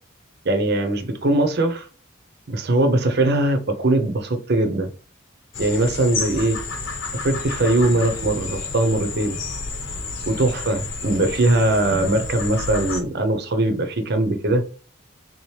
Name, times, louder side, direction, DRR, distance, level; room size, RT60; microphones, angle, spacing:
voice 1, 0.4-1.9 2.5-4.9 5.6-6.6 7.1-9.4 10.3-14.6, right 2 dB, 50° right, 0.6 m, -21 dB
sound 1, 5.5-13.0, left 4 dB, 65° left, 1.0 m, -30 dB
3.9 x 2.8 x 3.2 m
head